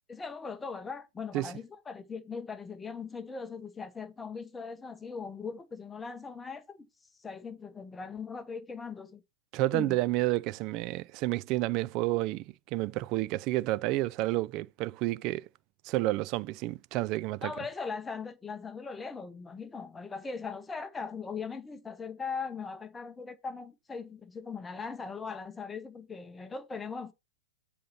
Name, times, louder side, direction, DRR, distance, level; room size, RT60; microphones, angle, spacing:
voice 1, 0.1-6.9 7.2-9.2 9.7-10.0 17.4-27.1, left 5 dB, 10° left, 0.9 m, -39 dB
voice 2, 9.5-15.5 15.8-17.5, right 18 dB, 35° right, 0.4 m, -30 dB
7.7 x 4.2 x 5.8 m
figure-of-eight pair, 110°, 0 cm